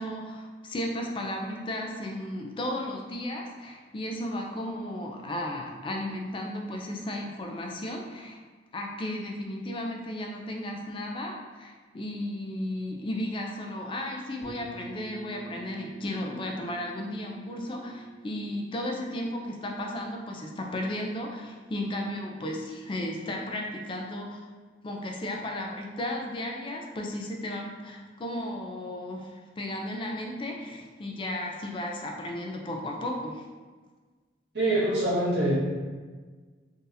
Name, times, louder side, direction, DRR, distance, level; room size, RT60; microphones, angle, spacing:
voice 1, 0.0-8.4 8.7-24.4 24.8-33.4, left 1 dB, 30° left, 1 dB, 0.3 m, -34 dB
sound 1, 14.4-24.1, right 5 dB, 80° left, 1.4 m, -48 dB
voice 2, 34.5-35.5, right 1 dB, 80° right, -8 dB, 1.4 m, -24 dB
3.8 x 2.7 x 2.6 m, 1.4 s
head